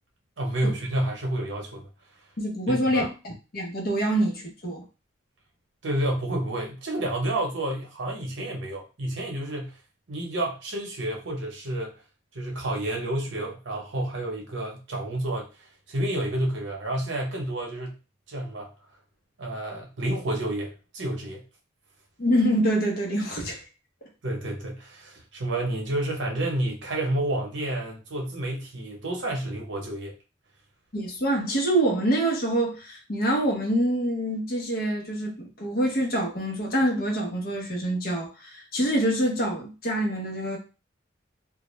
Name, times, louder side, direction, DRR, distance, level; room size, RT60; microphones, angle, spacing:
voice 1, 0.4-1.9 2.7-3.1 5.8-9.8 10.1-11.9 12.3-15.5 15.9-18.0 18.3-18.7 19.4-21.4 24.2-30.1, right 1 dB, 70° right, 0.8 m, -30 dB
voice 2, 2.4-4.8 22.2-23.6 30.9-40.6, right 1 dB, 50° left, 0.7 m, -26 dB
2.3 x 2.2 x 3.0 m
head